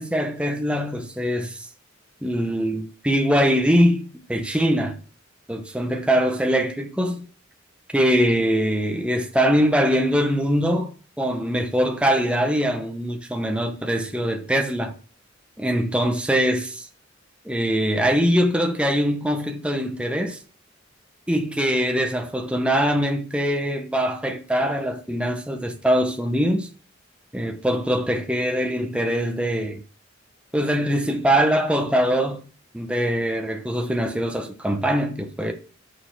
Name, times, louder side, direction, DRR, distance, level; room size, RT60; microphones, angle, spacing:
voice 1, 0.0-1.7 2.2-5.0 5.5-7.3 7.9-14.9 15.6-16.8 17.4-20.4 21.3-26.7 27.3-29.8 30.5-32.4 32.7-35.5, equal, 5° right, 0.8 m, -22 dB
6.8 x 6.6 x 4.5 m
head